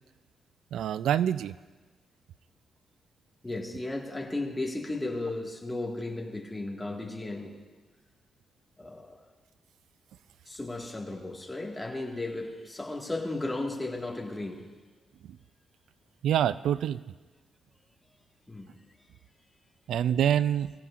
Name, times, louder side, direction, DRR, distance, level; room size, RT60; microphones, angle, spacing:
voice 1, 0.7-1.5 16.2-17.0 19.9-20.7, right 10 dB, 85° right, 15 dB, 0.3 m, -26 dB
voice 2, 3.4-7.6 8.8-9.2 10.5-14.7 18.5-19.1, left 2 dB, 10° left, -1 dB, 1.7 m, -35 dB
24.0 x 15.5 x 2.5 m, 1.3 s
wide cardioid pair, 145°, 0 cm